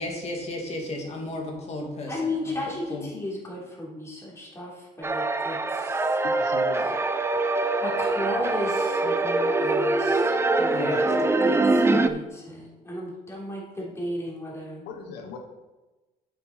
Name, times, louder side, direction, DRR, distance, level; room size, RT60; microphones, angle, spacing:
voice 1, 0.0-2.5 2.9-3.1 10.7-11.1, left 2 dB, 40° left, 1 dB, 2.4 m, -33 dB
voice 2, 2.1-6.2 7.8-14.8, left 1 dB, 15° left, -4 dB, 3.5 m, -35 dB
sound 1, 5.0-12.1, right 2 dB, 15° right, 0.6 m, -23 dB
voice 3, 6.2-7.0 14.8-15.4, left 5 dB, 85° left, 3 dB, 1.2 m, -38 dB
8.6 x 7.7 x 4.4 m, 1.1 s
cardioid pair, 110°, 17 cm